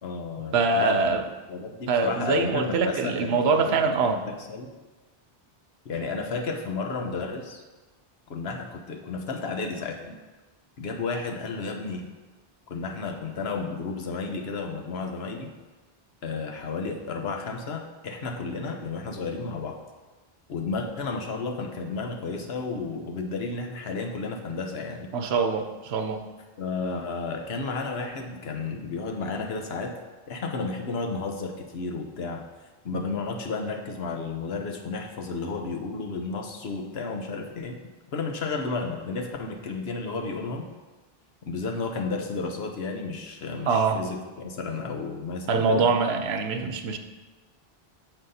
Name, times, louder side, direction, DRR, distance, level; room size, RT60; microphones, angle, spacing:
voice 1, 0.0-3.8 4.0-4.7 5.8-7.6 8.3-10.2 10.8-12.1 12.7-15.5 16.2-19.8 20.5-25.1 26.6-30.0 30.3-32.4 32.8-37.8 38.1-40.7 41.4-45.9, left 4 dB, 85° left, 3 dB, 1.1 m, -32 dB
voice 2, 0.5-1.2 1.9-4.2 25.1-26.2 43.7-44.0 45.5-47.0, right 4 dB, 85° right, 7 dB, 0.9 m, -24 dB
8.9 x 7.3 x 2.8 m, 1.2 s
omnidirectional pair, 1.0 m